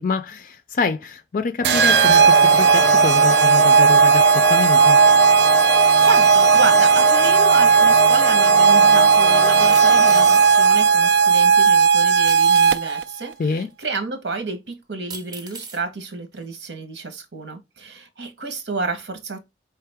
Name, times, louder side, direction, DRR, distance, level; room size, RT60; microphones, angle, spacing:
voice 1, 0.0-5.0 13.4-13.7, left 4 dB, 50° left, 0.4 m, -26 dB
Singing / Musical instrument, 1.6-11.6, left 1 dB, 15° left, 0.6 m, -24 dB
sound 1, 1.6-13.0, right 6 dB, 60° right, 0.3 m, -15 dB
voice 2, 5.6-19.4, right 3 dB, 85° right, 1.1 m, -30 dB
sound 2, 9.7-10.5 12.3-12.8 13.8-13.9 15.1-15.8 16.5-16.6, right 4 dB, 25° right, 0.6 m, -36 dB
4.7 x 3.3 x 3.4 m
head